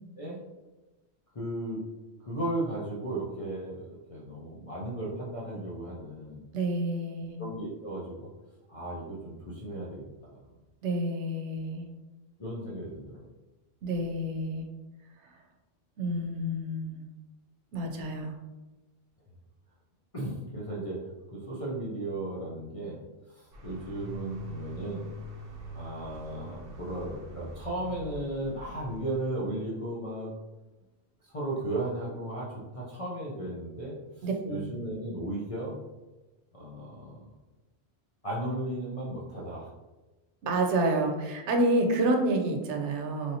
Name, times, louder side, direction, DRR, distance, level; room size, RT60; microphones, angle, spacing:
voice 1, 1.3-1.8 2.2-6.4 7.4-8.3 8.7-10.4 12.4-13.3 20.1-21.0 21.3-25.1 25.7-30.3 31.2-35.8 36.5-37.3 38.2-39.7, right 1 dB, 45° left, -6 dB, 0.5 m, -35 dB
voice 2, 6.5-7.4 10.8-11.9 13.8-14.7 15.2-15.4 16.0-17.0 17.7-18.4 34.2-34.7 40.4-43.4, right 1 dB, 85° right, 3 dB, 0.9 m, -29 dB
sound 1, 23.5-29.4, right 1 dB, 60° right, 0.8 m, -44 dB
3.2 x 2.7 x 2.7 m, 1.1 s
omnidirectional pair, 1.1 m